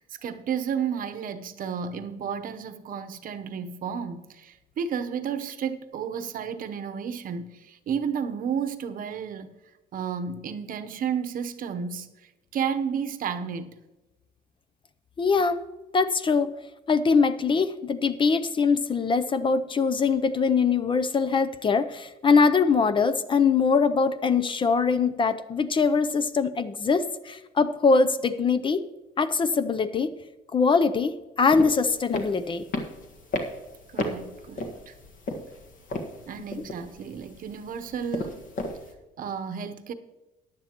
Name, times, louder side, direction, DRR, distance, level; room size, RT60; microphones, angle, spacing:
voice 1, 0.0-9.5 9.9-13.8 33.9-34.9 36.3-38.5 39.2-39.9, right 7 dB, 55° right, 0.8 m, -32 dB
voice 2, 15.2-15.6 15.9-16.5 16.9-28.9 29.2-30.1 30.5-32.6, left 5 dB, 30° left, 0.6 m, -22 dB
sound 1, 31.4-38.9, left 1 dB, 55° left, 1.6 m, -35 dB
15.0 x 10.5 x 3.0 m
cardioid pair, 110°, 17 cm